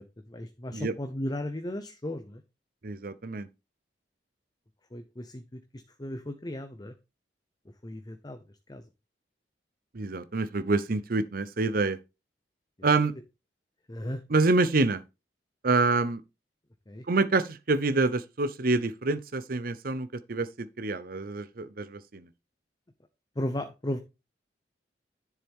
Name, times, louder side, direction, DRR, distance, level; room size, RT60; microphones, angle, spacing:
voice 1, 0.0-2.4 4.9-6.9 7.8-8.4 8.7-8.8 13.9-14.2 16.9-17.1 23.4-24.0, left 1 dB, 20° left, 0.8 m, -36 dB
voice 2, 2.8-3.5 9.9-12.0 12.8-13.1 14.3-15.0 15.6-16.2 17.1-22.3, right 3 dB, 55° right, 0.7 m, -27 dB
10.5 x 7.3 x 3.6 m
head